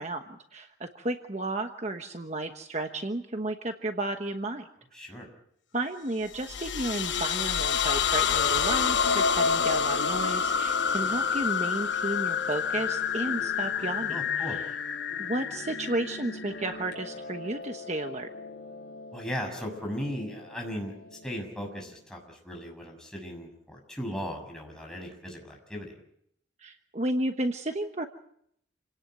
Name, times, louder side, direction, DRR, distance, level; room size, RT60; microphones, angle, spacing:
voice 1, 0.0-4.7 5.0-5.1 5.7-14.7 15.2-18.3 26.6-28.1, right 2 dB, 40° right, 6 dB, 1.2 m, -33 dB
voice 2, 4.9-5.3 14.1-14.6 19.1-20.9 21.2-25.9, equal, 5° left, 1 dB, 6.6 m, -37 dB
sound 1, 6.3-16.9, left 7 dB, 90° left, 0.9 m, -28 dB
Piano, 7.5-21.9, left 3 dB, 60° left, 4.4 m, -45 dB
28.5 x 18.0 x 7.9 m, 0.73 s
head